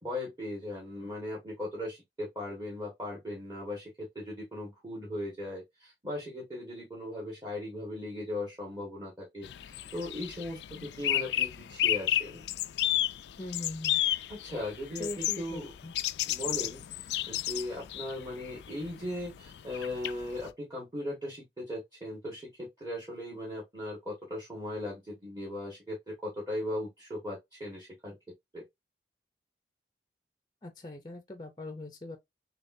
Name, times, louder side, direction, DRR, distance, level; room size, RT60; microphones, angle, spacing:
voice 1, 0.0-12.4 14.3-15.7 16.3-28.1 28.5-28.6, left 1 dB, 20° right, 1.5 m, -38 dB
sound 1, 9.4-20.5, left 13 dB, 80° left, 0.3 m, -33 dB
voice 2, 13.4-14.0 15.0-15.9 30.6-32.2, left 1 dB, 25° left, 0.6 m, -41 dB
6.7 x 2.3 x 2.7 m
head